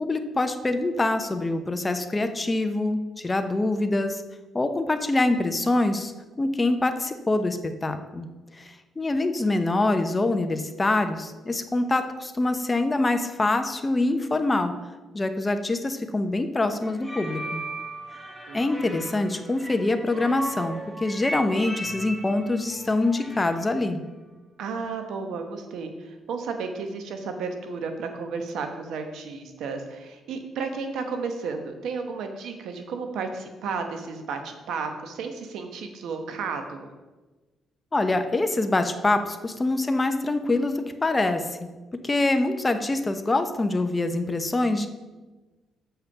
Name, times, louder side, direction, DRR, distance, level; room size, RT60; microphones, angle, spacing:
voice 1, 0.0-4.2 4.5-6.1 6.4-8.3 8.5-14.7 15.1-17.6 18.5-24.0 37.9-41.7 42.0-44.9, left 2 dB, 20° left, 8 dB, 0.8 m, -25 dB
sound 1, 16.8-23.7, right 1 dB, 10° right, 1.4 m, -36 dB
voice 2, 24.6-36.9, right 4 dB, 80° right, 6 dB, 1.1 m, -33 dB
7.0 x 5.7 x 5.8 m, 1.2 s
cardioid pair, 90°, 0 cm